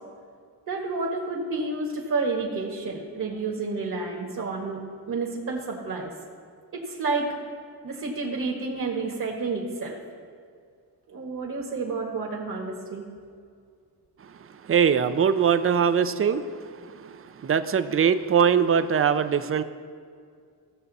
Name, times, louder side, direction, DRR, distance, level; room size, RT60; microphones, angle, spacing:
voice 1, 0.7-4.8 5.1-6.1 6.7-7.3 7.8-10.0 11.1-13.0, right 3 dB, 50° right, -2 dB, 1.7 m, -30 dB
voice 2, 14.7-16.4 17.4-19.6, right 7 dB, 35° right, 12 dB, 0.5 m, -21 dB
16.0 x 6.6 x 4.1 m, 2.2 s
cardioid pair, 95°, 40 cm